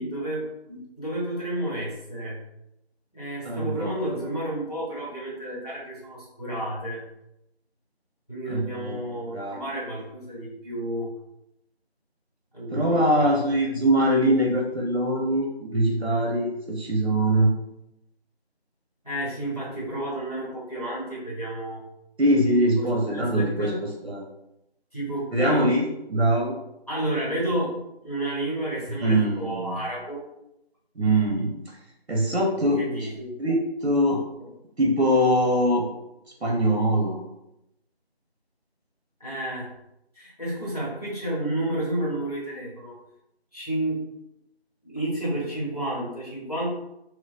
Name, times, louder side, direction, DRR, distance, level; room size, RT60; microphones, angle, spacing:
voice 1, 0.0-2.4 3.1-7.0 8.3-11.1 12.5-13.5 13.7-13.8 19.0-21.8 22.8-22.9 23.1-23.8 24.9-25.7 26.9-27.7 28.0-30.2 32.8-33.3 39.2-39.7 40.1-42.9 43.5-44.1 44.8-46.7, right 1 dB, 35° left, -7 dB, 1.0 m, -31 dB
voice 2, 3.4-4.1 8.5-9.6 12.7-17.5 22.2-24.2 25.3-26.5 29.0-29.8 31.0-31.5 32.1-33.1 33.4-34.2 34.8-35.9 36.4-37.2, right 1 dB, 80° right, -1 dB, 0.8 m, -23 dB
4.3 x 2.2 x 2.4 m, 0.85 s
figure-of-eight pair, 180°, 32 cm